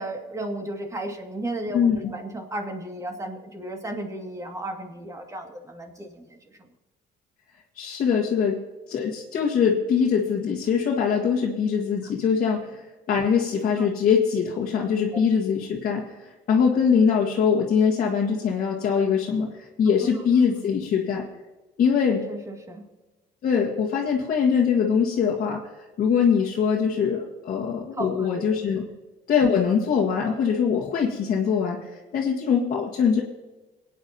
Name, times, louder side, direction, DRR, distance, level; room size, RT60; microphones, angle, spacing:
voice 1, 0.0-6.2 13.8-13.9 15.1-15.2 22.3-22.8 28.0-28.3, right 1 dB, 20° right, 2 dB, 2.4 m, -34 dB
voice 2, 1.7-2.1 7.8-8.6 8.9-12.8 13.1-21.2 21.8-22.2 23.4-25.6 26.0-28.8 29.3-33.2, left 6 dB, 55° left, -3 dB, 1.8 m, -22 dB
27.5 x 9.5 x 2.9 m, 1.1 s
cardioid pair, 110°, 17 cm